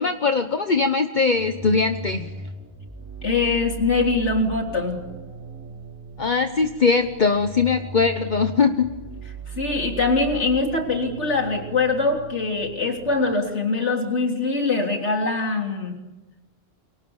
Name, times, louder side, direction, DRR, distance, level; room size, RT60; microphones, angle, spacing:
voice 1, 0.0-2.3 6.2-8.9, left 4 dB, 45° left, 7 dB, 1.1 m, -21 dB
sound 1, 1.3-13.3, right 4 dB, 15° right, 3.7 m, -38 dB
voice 2, 3.2-5.0 9.6-16.0, left 3 dB, 90° left, 2 dB, 3.8 m, -23 dB
29.0 x 24.0 x 7.2 m, 1.1 s
omnidirectional pair, 1.2 m